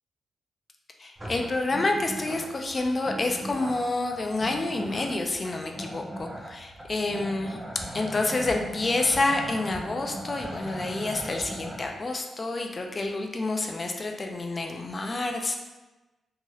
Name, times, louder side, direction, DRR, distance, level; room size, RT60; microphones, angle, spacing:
voice 1, 1.0-7.6 7.9-15.5, left 2 dB, 35° left, 3 dB, 0.4 m, -28 dB
sound 1, 1.2-11.9, right 1 dB, 20° right, 0.8 m, -39 dB
3.0 x 2.8 x 2.3 m, 1.1 s
cardioid pair, 90°, 0 cm